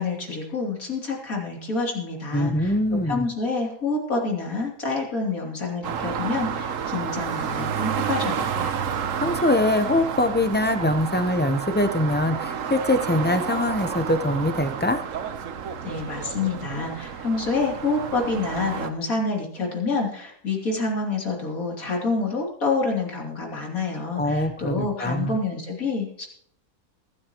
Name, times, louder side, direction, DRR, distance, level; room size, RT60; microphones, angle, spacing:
voice 1, 0.0-2.7 3.1-8.7 15.8-26.3, left 3 dB, 60° left, -1 dB, 3.4 m, -27 dB
voice 2, 2.3-3.3 9.2-15.0 24.2-25.4, left 1 dB, 15° left, 9 dB, 0.4 m, -23 dB
sound 1, 5.8-18.9, right 7 dB, 60° right, 1.2 m, -30 dB
24.0 x 9.6 x 3.0 m, 0.64 s
omnidirectional pair, 1.6 m